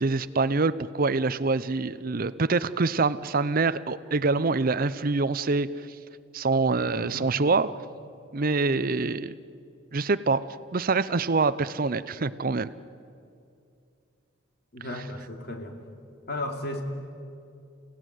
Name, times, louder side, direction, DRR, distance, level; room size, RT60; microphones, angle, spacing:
voice 1, 0.0-5.7 6.3-7.7 8.3-9.3 9.9-12.7, right 3 dB, 45° right, 15 dB, 0.6 m, -25 dB
voice 2, 6.9-7.4 14.7-15.8 16.3-16.8, left 1 dB, 55° left, 4 dB, 2.9 m, -35 dB
30.0 x 17.0 x 9.4 m, 2.5 s
head